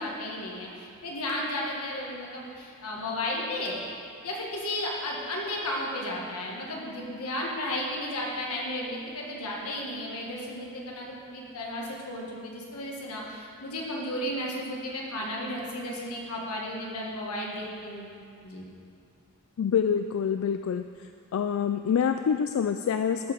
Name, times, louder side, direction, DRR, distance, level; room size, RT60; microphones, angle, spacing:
voice 1, 0.0-3.8 4.2-18.1 18.4-18.6, left 1 dB, 90° left, -3 dB, 1.9 m, -34 dB
voice 2, 19.6-20.8 21.3-23.3, left 7 dB, 65° left, 8 dB, 0.3 m, -26 dB
13.5 x 5.1 x 5.5 m, 2.5 s
head